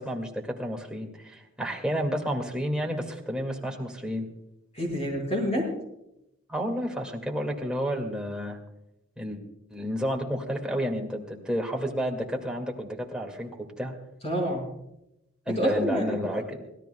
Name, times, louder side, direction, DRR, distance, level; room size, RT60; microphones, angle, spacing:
voice 1, 0.0-4.3 6.5-8.6 9.2-9.4 9.7-13.9 15.5-16.7, equal, 5° right, 0 dB, 2.1 m, -31 dB
voice 2, 4.7-5.7 14.2-14.7 15.4-16.4, equal, 30° left, 1 dB, 5.2 m, -28 dB
25.5 x 17.0 x 2.3 m, 0.86 s
head